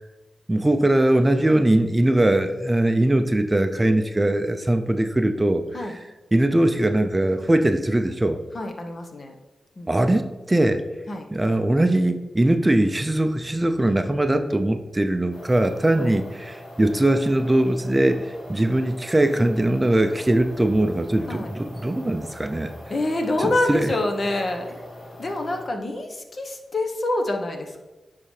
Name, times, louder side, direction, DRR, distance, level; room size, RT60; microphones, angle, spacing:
voice 1, 0.5-5.6 6.3-8.4 9.9-10.8 11.3-22.7 23.4-23.9, right 1 dB, 20° right, 8 dB, 0.4 m, -21 dB
voice 2, 8.5-9.4 9.8-10.0 11.1-11.3 15.9-16.2 21.3-21.5 22.9-24.8 25.2-27.8, left 2 dB, 50° left, 3 dB, 1.0 m, -26 dB
sound 1, 15.3-25.7, left 1 dB, 75° left, 1.7 m, -42 dB
9.8 x 3.8 x 3.3 m, 1.1 s
cardioid pair, 55°, 0 cm